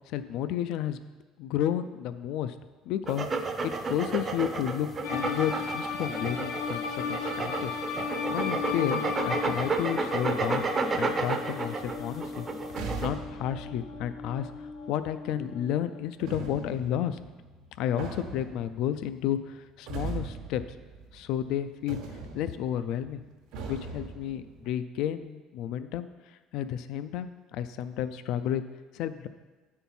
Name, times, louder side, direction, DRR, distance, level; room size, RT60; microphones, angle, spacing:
voice 1, 0.1-1.0 1.4-2.5 2.9-7.8 8.3-12.5 13.0-14.5 14.9-17.2 17.8-20.6 21.1-22.0 22.3-23.2 23.7-26.1 26.5-28.6 28.9-29.3, left 10 dB, 60° left, 11 dB, 0.3 m, -32 dB
sound 1, 3.1-13.1, right 3 dB, 20° right, 0.6 m, -31 dB
sound 2, 5.0-16.0, left 6 dB, 90° left, 0.7 m, -36 dB
sound 3, 11.8-15.2 16.2-21.6 21.9-24.7, right 4 dB, 70° right, 1.0 m, -41 dB
9.1 x 4.4 x 5.4 m, 1.2 s
cardioid pair, 165°, 0 cm